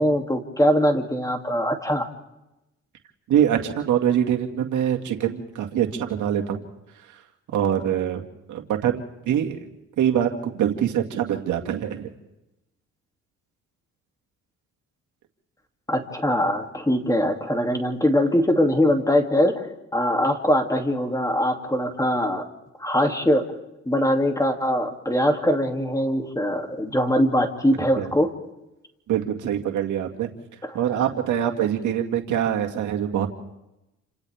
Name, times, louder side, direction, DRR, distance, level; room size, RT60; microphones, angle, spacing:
voice 1, 0.0-2.0 15.9-22.4 22.8-23.5 23.9-28.3 30.6-30.8, equal, 10° left, 4 dB, 2.7 m, -22 dB
voice 2, 3.3-6.6 7.5-8.2 8.5-9.7 10.0-12.1 27.9-28.1 29.1-30.3 30.7-33.3, right 10 dB, 75° right, 3 dB, 2.2 m, -24 dB
29.0 x 26.5 x 3.6 m, 0.92 s
cardioid pair, 90°, 30 cm